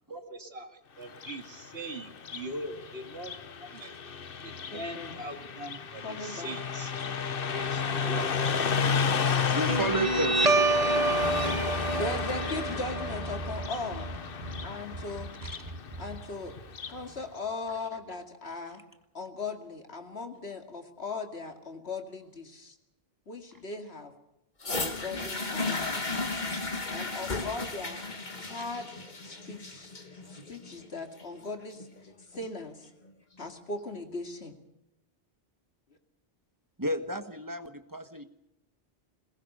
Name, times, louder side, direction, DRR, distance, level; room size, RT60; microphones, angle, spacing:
voice 1, 0.1-3.3 3.6-3.9 4.4-6.9 7.5-8.3, right 1 dB, 75° right, 6 dB, 2.3 m, -41 dB
Car passing by, 1.1-17.0, left 6 dB, 60° left, 1.2 m, -33 dB
voice 2, 4.7-5.2 6.0-6.5 7.0-7.2 8.6-8.8 12.0-14.1 14.6-15.3 16.0-16.5 16.9-18.8 19.1-22.7 23.3-24.1 24.8-26.1 26.9-28.0 28.4-29.0 29.2-29.9 30.3-31.9 32.3-32.9 33.4-34.6, left 3 dB, 85° left, 5 dB, 2.6 m, -38 dB
voice 3, 9.1-10.7 15.4-15.7 28.5-28.7 36.8-38.2, right 1 dB, 20° right, 8 dB, 1.4 m, -33 dB
Guitar, 9.7-16.7, right 3 dB, 40° right, 1.1 m, -29 dB
sound 1, 24.6-32.6 33.4-33.5, left 3 dB, 45° left, 1.8 m, -35 dB
21.5 x 20.0 x 6.7 m, 0.90 s
omnidirectional pair, 1.1 m